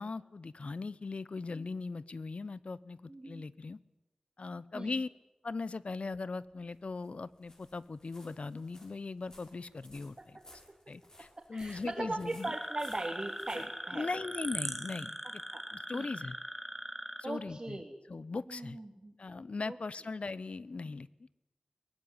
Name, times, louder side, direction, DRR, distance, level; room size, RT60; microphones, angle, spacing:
voice 1, 0.0-3.0 3.3-3.8 4.4-5.1 5.4-10.4 10.9-12.5 13.9-15.4 15.7-16.4 17.2-18.8 19.2-21.1, left 3 dB, 70° left, 19 dB, 0.8 m, -39 dB
voice 2, 3.1-3.5 4.7-4.9 10.2-10.3 11.5-14.2 15.5-15.6 15.9-16.1 17.2-17.9 18.5-19.1 19.7-19.8, right 2 dB, 35° right, 0 dB, 3.2 m, -39 dB
sound 1, 6.4-14.6, left 1 dB, 30° left, 6.1 m, -60 dB
sound 2, 12.4-17.2, equal, 5° right, 2.2 m, -40 dB
22.5 x 19.5 x 9.9 m, 0.99 s
wide cardioid pair, 80°, 2 cm